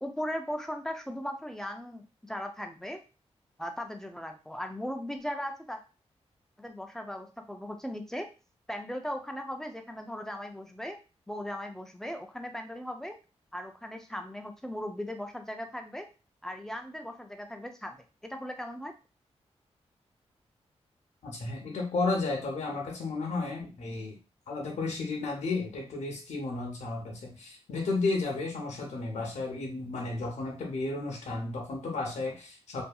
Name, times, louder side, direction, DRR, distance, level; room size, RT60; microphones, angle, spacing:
voice 1, 0.0-3.0 3.6-5.8 6.6-8.3 8.7-11.0 11.3-13.2 13.5-16.1 16.4-18.0 18.3-18.9, equal, 5° left, 5 dB, 0.4 m, -38 dB
voice 2, 21.2-24.2 24.5-32.8, left 3 dB, 80° left, 0 dB, 0.7 m, -33 dB
2.6 x 2.6 x 2.3 m, 0.33 s
wide cardioid pair, 90°, 12 cm